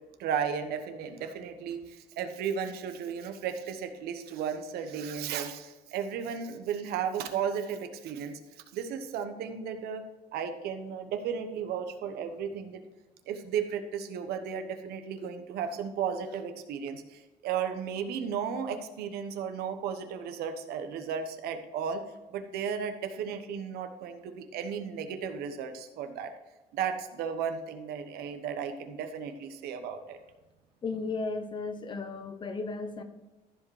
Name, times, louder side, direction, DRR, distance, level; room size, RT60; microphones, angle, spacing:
voice 1, 0.2-8.4 8.7-10.0 10.3-12.8 13.3-22.0 22.3-26.3 26.7-30.2, right 7 dB, 75° right, 7 dB, 1.1 m, -34 dB
voice 2, 30.8-33.0, left 3 dB, 30° left, 9 dB, 0.8 m, -35 dB
14.0 x 5.1 x 4.8 m, 1.1 s
cardioid pair, 150°, 16 cm